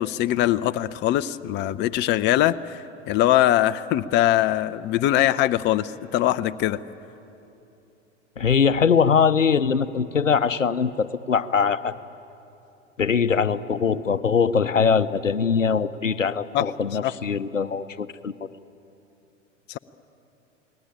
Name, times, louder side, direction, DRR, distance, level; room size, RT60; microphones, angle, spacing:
voice 1, 0.0-6.8 16.5-16.7 17.0-17.1 19.7-19.8, left 13 dB, 30° left, 12 dB, 0.6 m, -22 dB
voice 2, 8.4-12.0 13.0-18.3, left 6 dB, 90° left, 14 dB, 0.7 m, -22 dB
28.5 x 20.0 x 8.9 m, 2.9 s
figure-of-eight pair, 90°, 37 cm